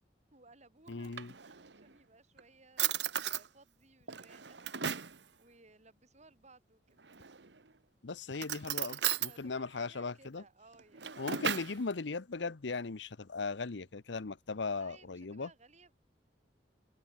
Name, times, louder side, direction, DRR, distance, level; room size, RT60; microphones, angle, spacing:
voice 1, 0.3-4.9 5.4-7.0 9.3-11.2 14.7-15.9, right 3 dB, 40° right, 7.8 m, -61 dB
voice 2, 0.9-1.3 8.0-10.4 11.2-15.5, left 4 dB, 80° left, 0.8 m, -38 dB
Drawer open or close, 0.9-1.8 2.4-2.5 2.8-3.5 4.1-5.2 7.0-7.6 8.3-9.4 10.7-11.8, right 9 dB, 70° right, 1.4 m, -35 dB
open air
head